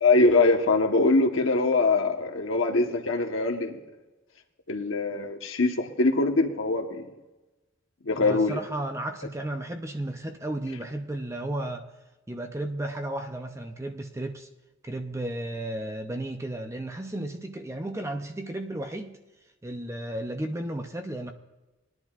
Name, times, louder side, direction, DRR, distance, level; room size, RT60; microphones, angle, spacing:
voice 1, 0.0-3.8 4.7-7.1 8.0-8.6, left 3 dB, 75° left, 2 dB, 1.2 m, -23 dB
voice 2, 8.2-11.9 12.3-14.5 14.8-19.2 19.6-21.3, right 1 dB, 15° right, 5 dB, 0.6 m, -33 dB
19.5 x 10.5 x 2.5 m, 1.1 s
head